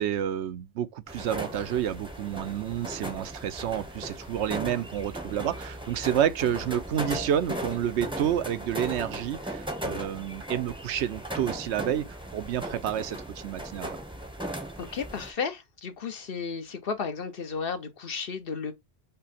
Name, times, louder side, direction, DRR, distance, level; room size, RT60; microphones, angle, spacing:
voice 1, 0.0-14.0, right 10 dB, 80° right, 0.9 m, -29 dB
sound 1, 1.1-15.3, right 1 dB, 5° right, 0.7 m, -37 dB
voice 2, 14.8-18.7, left 5 dB, 60° left, 1.0 m, -33 dB
5.5 x 2.2 x 4.1 m
omnidirectional pair, 1.1 m